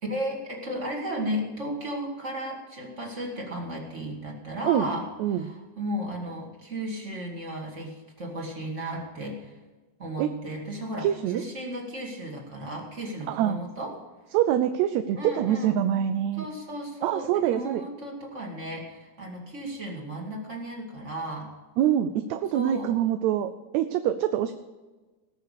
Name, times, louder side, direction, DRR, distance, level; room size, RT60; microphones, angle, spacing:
voice 1, 0.0-5.1 5.3-9.6 10.0-11.1 11.3-13.9 15.2-15.8 16.4-21.5 22.5-23.0, equal, 25° right, 0 dB, 2.2 m, -34 dB
voice 2, 5.2-5.5 10.2-10.3 11.0-11.4 13.3-13.6 14.3-16.5 17.0-17.8 21.8-24.5, right 11 dB, 80° right, 9 dB, 1.9 m, -25 dB
19.0 x 6.7 x 6.6 m, 1.2 s
omnidirectional pair, 3.3 m